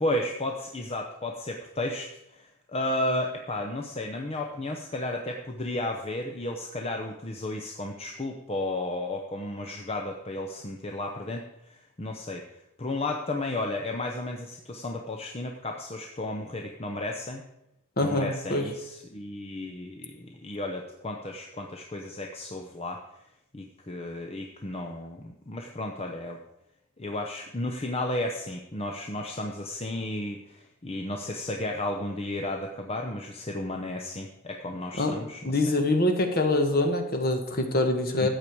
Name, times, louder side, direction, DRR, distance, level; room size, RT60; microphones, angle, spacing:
voice 1, 0.0-12.4 12.8-17.4 18.0-23.0 23.5-26.4 27.0-35.6 38.2-38.3, left 1 dB, 25° left, 2 dB, 0.8 m, -33 dB
voice 2, 18.0-18.6 35.0-35.1 35.4-38.3, left 2 dB, 40° left, 5 dB, 1.5 m, -24 dB
14.0 x 8.6 x 4.7 m, 0.86 s
head